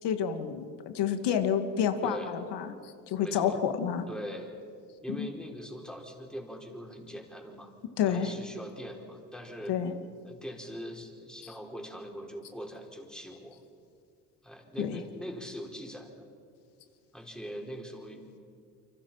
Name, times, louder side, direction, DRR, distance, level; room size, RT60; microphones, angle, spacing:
voice 1, 0.0-4.1 5.1-5.3 8.0-8.3 9.7-9.9 14.8-15.0, left 8 dB, 70° left, 7 dB, 2.5 m, -29 dB
voice 2, 3.2-3.6 4.1-4.5 5.0-7.7 8.0-9.7 10.2-13.6 14.4-16.2 17.1-18.4, equal, ahead, 1 dB, 5.4 m, -42 dB
30.0 x 25.0 x 5.9 m, 2.2 s
supercardioid pair, 85°, 43 cm